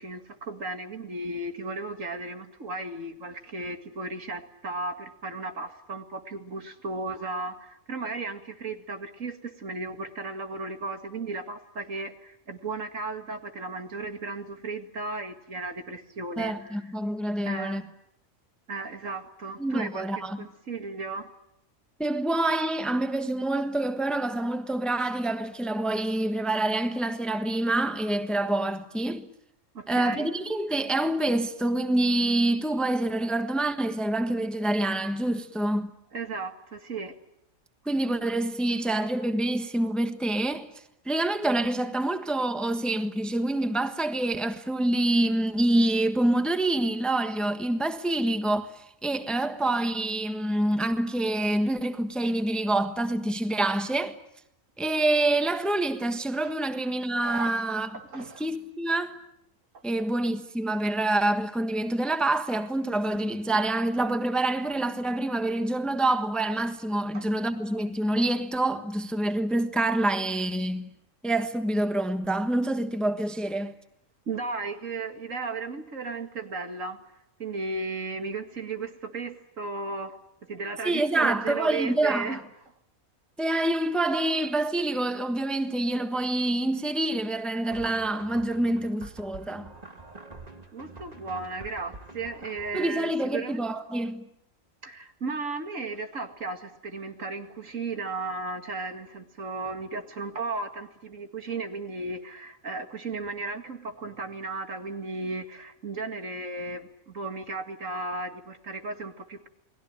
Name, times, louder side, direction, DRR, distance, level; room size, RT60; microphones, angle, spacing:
voice 1, 0.0-16.8 17.4-17.8 18.7-21.3 29.7-30.3 36.1-37.2 56.4-56.6 57.2-57.5 57.9-58.4 63.1-63.3 67.1-67.2 74.3-77.0 77.4-82.4 90.7-93.6 94.8-109.5, right 3 dB, 70° right, 2.4 m, -35 dB
voice 2, 16.4-17.8 19.6-20.4 22.0-29.3 29.9-35.9 37.8-40.7 41.0-54.1 54.8-59.2 59.8-70.9 71.2-73.7 80.8-82.4 83.4-89.7 92.7-94.3, right 1 dB, ahead, 1.3 m, -26 dB
sound 1, 87.7-92.9, right 3 dB, 30° right, 2.2 m, -46 dB
29.5 x 21.0 x 8.9 m
omnidirectional pair, 1.4 m